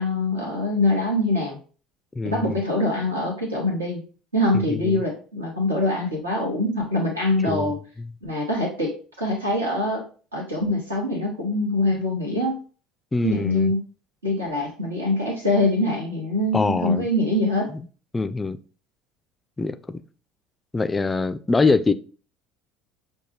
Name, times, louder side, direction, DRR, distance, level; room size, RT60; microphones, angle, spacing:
voice 1, 0.0-1.6 2.2-4.0 4.3-7.8 8.2-10.0 10.3-12.6 13.2-13.8 14.2-17.7, left 1 dB, 80° right, 1.0 m, -24 dB
voice 2, 2.2-2.6 4.5-5.0 7.5-7.7 13.1-13.7 16.5-17.1 18.1-18.6 19.6-20.0 20.7-21.9, left 3 dB, 15° left, 0.3 m, -23 dB
6.3 x 2.2 x 3.0 m
figure-of-eight pair, 65°, 0 cm